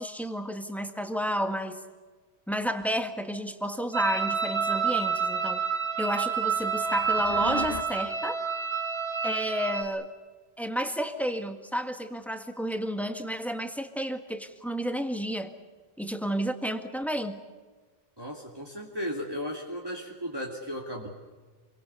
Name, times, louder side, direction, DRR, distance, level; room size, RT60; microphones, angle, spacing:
voice 1, 0.0-1.8 2.5-5.6 6.0-8.4 9.2-10.1 10.6-15.5 16.0-17.4, equal, ahead, 7 dB, 1.7 m, -31 dB
sound 1, 3.9-9.8, right 6 dB, 70° right, 2.3 m, -29 dB
sound 2, 6.4-7.8, left 2 dB, 40° left, 1.8 m, -37 dB
voice 2, 18.2-21.1, equal, 25° right, -2 dB, 2.7 m, -35 dB
28.0 x 22.5 x 6.9 m, 1.4 s
omnidirectional pair, 1.1 m